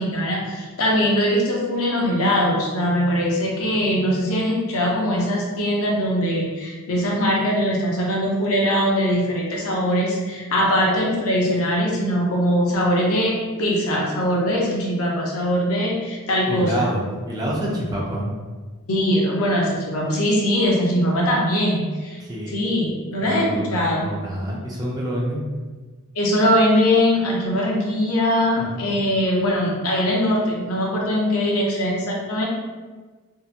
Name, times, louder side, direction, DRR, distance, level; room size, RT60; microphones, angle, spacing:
voice 1, 0.0-16.8 18.9-22.2 22.5-24.1 26.1-32.5, equal, 65° left, -3 dB, 0.6 m, -21 dB
voice 2, 16.5-18.3 22.2-22.6 23.2-25.4 28.5-28.9, right 1 dB, 15° right, -4 dB, 0.4 m, -27 dB
2.7 x 2.1 x 2.4 m, 1.4 s
head